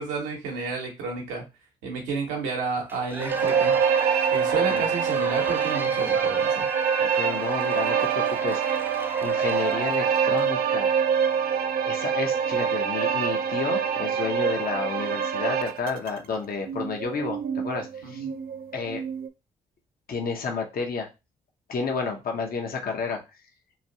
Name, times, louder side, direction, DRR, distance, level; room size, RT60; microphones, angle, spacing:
voice 1, 0.0-1.4 1.8-3.8 4.3-6.7 18.0-18.3, right 4 dB, 80° right, 0 dB, 1.0 m, -31 dB
Cheering / Applause / Crowd, 2.9-10.5, right 1 dB, 10° right, 0.7 m, -36 dB
sound 1, 3.3-16.2 16.7-19.3, right 7 dB, 55° right, 0.4 m, -25 dB
voice 2, 7.0-8.6 9.2-10.9 11.8-18.2 18.7-19.0 20.1-21.1 21.7-23.2, left 4 dB, 55° left, 2 dB, 0.9 m, -31 dB
3.0 x 2.5 x 2.8 m, 0.26 s
hypercardioid pair, 45°, 19 cm